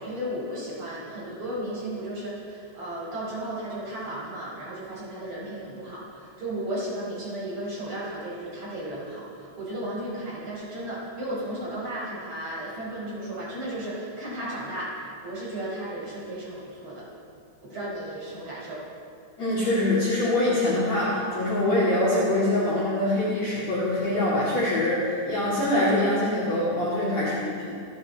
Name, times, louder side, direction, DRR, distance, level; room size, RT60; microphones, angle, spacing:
voice 1, 0.0-17.1 17.6-18.8, right 1 dB, 25° right, -7 dB, 5.4 m, -34 dB
voice 2, 19.4-27.7, left 1 dB, 40° left, -8 dB, 3.3 m, -24 dB
27.5 x 9.8 x 4.3 m, 2.3 s
omnidirectional pair, 5.4 m